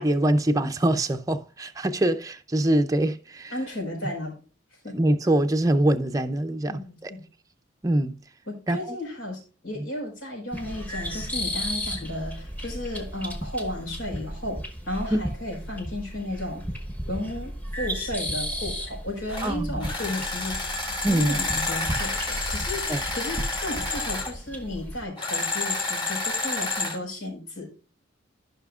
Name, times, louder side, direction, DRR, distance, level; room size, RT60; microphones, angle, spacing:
voice 1, 0.0-3.5 4.9-7.1 7.8-8.2 8.7-9.0 15.1-15.2 19.4-19.7 21.0-21.4 22.9-23.0, right 1 dB, 20° right, 0.5 m, -24 dB
voice 2, 3.5-4.3 4.8-5.0 6.7-7.2 8.5-14.6 14.9-16.6 17.1-20.7 21.0-27.7, left 1 dB, 85° left, 4.6 m, -34 dB
sound 1, 10.5-25.0, equal, 10° left, 1.0 m, -34 dB
sound 2, 19.3-19.5 19.8-24.3 25.2-27.0, left 3 dB, 25° left, 2.2 m, -29 dB
14.0 x 5.7 x 2.4 m
head